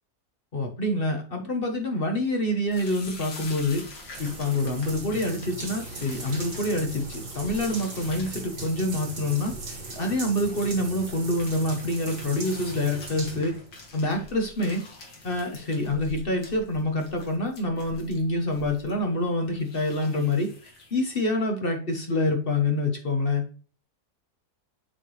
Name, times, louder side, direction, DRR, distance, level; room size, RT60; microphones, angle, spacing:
voice 1, 0.5-3.8 4.2-13.5 13.9-14.8 15.2-20.5 20.9-23.4, left 1 dB, 40° left, 3 dB, 0.9 m, -26 dB
sound 1, 2.7-21.4, left 2 dB, 65° left, 2.2 m, -46 dB
sound 2, 4.1-14.0 14.6-14.7 15.3-15.5, right 3 dB, 85° right, 2.6 m, -39 dB
7.6 x 4.4 x 3.2 m, 0.39 s
omnidirectional pair, 2.0 m